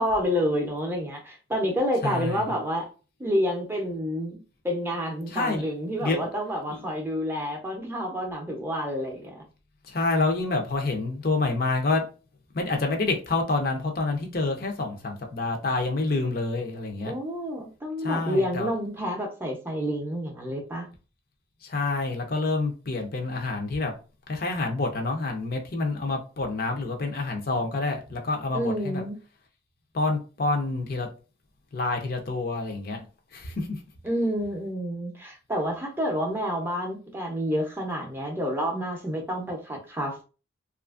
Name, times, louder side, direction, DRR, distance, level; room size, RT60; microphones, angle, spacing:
voice 1, 0.0-2.9 3.2-4.4 4.6-9.4 17.1-20.9 28.5-29.1 34.0-40.2, equal, 10° right, 0.5 m, -29 dB
voice 2, 2.0-2.4 5.3-5.6 6.0-6.3 6.7-6.8 9.9-12.0 12.5-17.1 18.0-18.7 21.7-23.9 24.3-29.0 29.9-31.1 31.7-33.0 33.3-33.7, left 3 dB, 45° left, 0.5 m, -27 dB
2.8 x 2.4 x 2.3 m
head